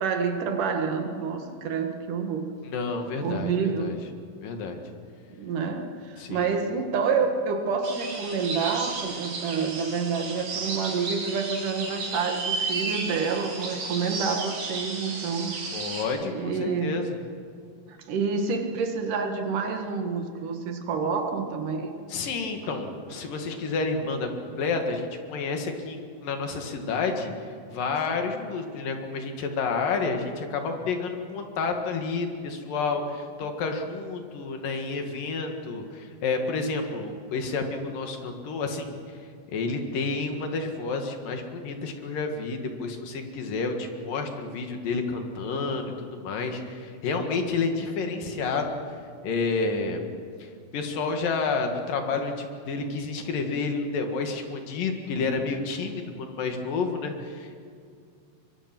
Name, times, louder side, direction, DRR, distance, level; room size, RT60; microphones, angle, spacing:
voice 1, 0.0-2.5 3.2-4.0 5.4-15.6 16.3-17.0 17.9-22.0 22.6-22.8, right 5 dB, 65° right, 5 dB, 3.2 m, -28 dB
voice 2, 2.6-4.0 4.4-4.8 6.2-6.5 15.7-17.2 22.1-27.3 27.7-39.0 39.5-48.7 49.2-50.0 50.4-57.6, left 4 dB, 70° left, 4 dB, 3.5 m, -30 dB
sound 1, 7.8-16.0, right 3 dB, 85° right, 5.1 m, -33 dB
24.0 x 23.0 x 6.1 m, 2.2 s
omnidirectional pair, 4.1 m